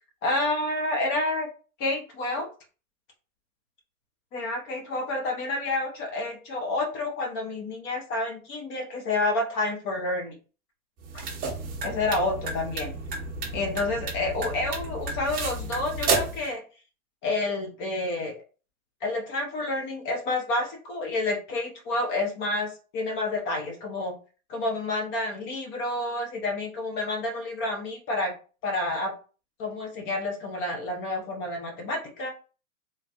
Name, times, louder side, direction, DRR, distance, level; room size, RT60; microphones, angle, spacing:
voice 1, 0.2-1.5 1.8-2.5 4.3-10.4 11.1-11.2 11.8-12.9 13.5-16.6 17.2-18.4 19.0-24.1 24.5-28.3 28.6-29.1 29.6-32.3, left 2 dB, 30° left, 2 dB, 0.7 m, -29 dB
sound 1, 11.0-16.5, right 3 dB, 20° right, 0.8 m, -31 dB
3.2 x 2.2 x 2.8 m, 0.36 s
hypercardioid pair, 125°, 41 cm